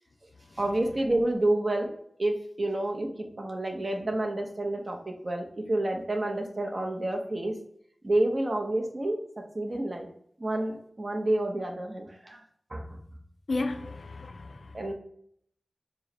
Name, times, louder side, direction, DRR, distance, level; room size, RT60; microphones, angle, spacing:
voice 1, 0.6-1.9 2.2-7.5 8.0-10.1 10.4-12.4 12.7-13.0 14.7-14.9, right 1 dB, 45° right, 0.8 m, -29 dB
voice 2, 13.5-14.9, left 3 dB, 75° left, 0.4 m, -34 dB
4.6 x 2.2 x 4.0 m
wide cardioid pair, 80°, 0 cm